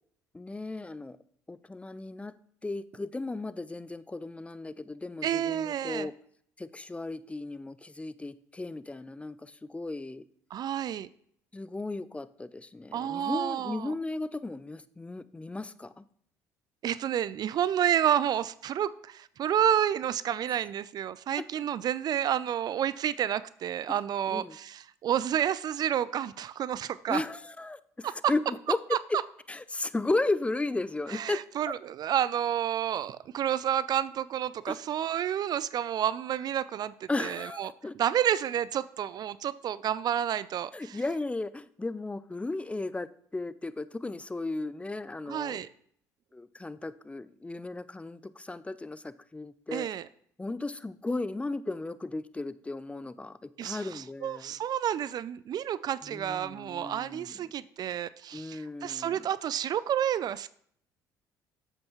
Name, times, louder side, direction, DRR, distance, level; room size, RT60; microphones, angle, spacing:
voice 1, 0.3-1.2 1.5-2.3 2.6-6.1 6.6-10.2 11.5-16.0 20.5-20.6 21.4-21.5 23.9-24.0 24.3-24.6 27.1-29.2 29.5-31.4 34.7-34.8 37.1-37.9 40.7-45.6 46.3-49.9 50.4-54.5 56.0-57.3 58.3-59.2, left 2 dB, 15° left, 16 dB, 0.4 m, -35 dB
voice 2, 5.2-6.1 10.5-11.1 12.9-13.9 16.8-27.2 28.0-28.1 31.1-37.7 38.0-41.0 45.3-45.7 49.7-50.1 53.6-60.5, right 10 dB, 50° right, 18 dB, 0.4 m, -30 dB
8.8 x 7.7 x 3.0 m, 0.64 s
hypercardioid pair, 60°, 9 cm